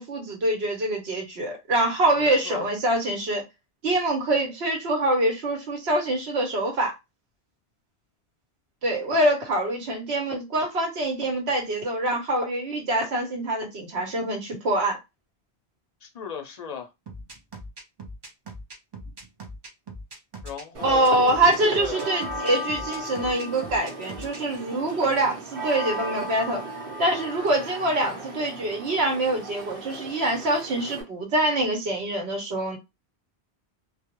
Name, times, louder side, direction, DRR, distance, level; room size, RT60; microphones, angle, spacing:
voice 1, 0.0-3.4 3.8-6.9 8.8-15.0 20.8-26.6 27.0-32.8, right 1 dB, 80° right, 1.1 m, -25 dB
voice 2, 2.2-2.7 16.0-16.9 20.4-21.4 21.7-22.1, left 7 dB, 50° left, 0.5 m, -36 dB
sound 1, 17.1-24.4, right 1 dB, 45° right, 0.3 m, -40 dB
sound 2, 20.7-31.0, right 1 dB, 60° right, 1.0 m, -36 dB
2.3 x 2.1 x 2.9 m
omnidirectional pair, 1.1 m